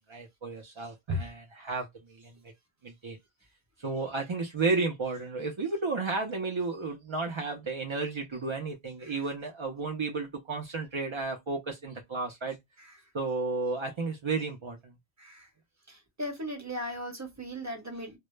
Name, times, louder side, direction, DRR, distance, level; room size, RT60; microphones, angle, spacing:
voice 1, 0.1-2.3 2.8-3.2 3.8-12.6 13.1-14.9, right 3 dB, 55° right, 0.3 m, -32 dB
voice 2, 16.2-18.2, equal, 15° right, 0.8 m, -37 dB
2.1 x 2.0 x 3.0 m
omnidirectional pair, 1.1 m